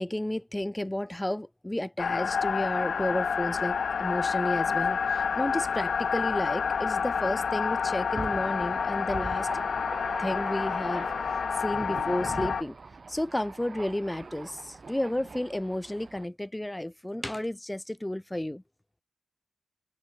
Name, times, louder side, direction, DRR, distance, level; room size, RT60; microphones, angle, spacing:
voice 1, 0.0-9.6 10.2-11.1 11.6-12.8 13.1-18.6, left 1 dB, 10° left, 0.9 m, -32 dB
sound 1, 2.0-12.6, left 6 dB, 60° left, 1.5 m, -29 dB
Thunder, 8.1-16.3, right 4 dB, 40° right, 2.6 m, -42 dB
cardioid pair, 75°, 0 cm